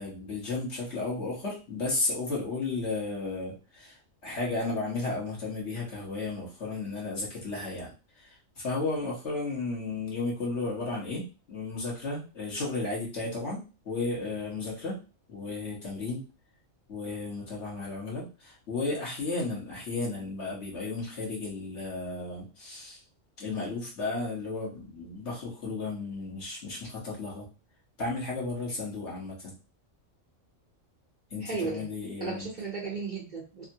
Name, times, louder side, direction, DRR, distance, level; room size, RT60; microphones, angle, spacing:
voice 1, 0.0-4.0 4.2-7.9 8.2-13.6 13.8-15.0 15.3-16.2 16.9-23.0 23.4-27.5 28.0-29.5 31.3-32.5, left 3 dB, 60° left, -4 dB, 1.4 m, -34 dB
voice 2, 31.4-31.8 32.2-33.7, right 4 dB, 40° right, -5 dB, 0.9 m, -34 dB
3.5 x 2.1 x 2.7 m, 0.32 s
omnidirectional pair, 1.4 m